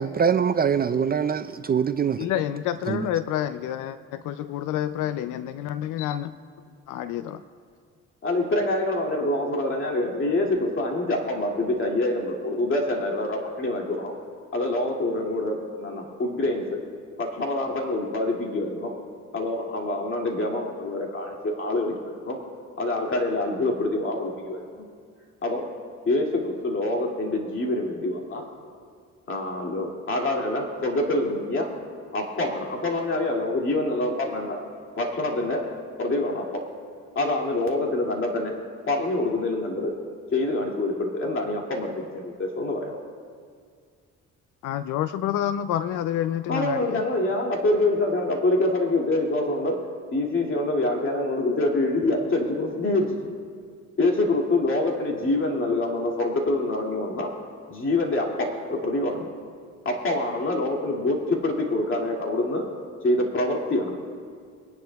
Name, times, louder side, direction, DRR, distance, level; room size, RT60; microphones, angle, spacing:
voice 1, 0.0-2.3 2.9-3.1, right 7 dB, 30° right, 10 dB, 0.4 m, -23 dB
voice 2, 2.2-6.3 6.9-7.4 44.6-47.0, left 11 dB, 85° left, 12 dB, 0.5 m, -28 dB
voice 3, 8.2-14.1 14.5-16.8 17.2-18.9 19.3-22.4 22.8-24.8 25.4-25.6 26.1-28.5 29.3-31.7 32.1-34.6 35.0-35.7 36.0-36.6 37.2-38.5 38.9-39.9 40.3-43.0 46.5-49.8 50.1-53.3 54.0-57.3 57.7-59.3 59.8-62.6 63.0-63.9, left 2 dB, 45° left, 0 dB, 2.4 m, -26 dB
23.0 x 10.5 x 2.3 m, 2.1 s
cardioid pair, 90°, 30 cm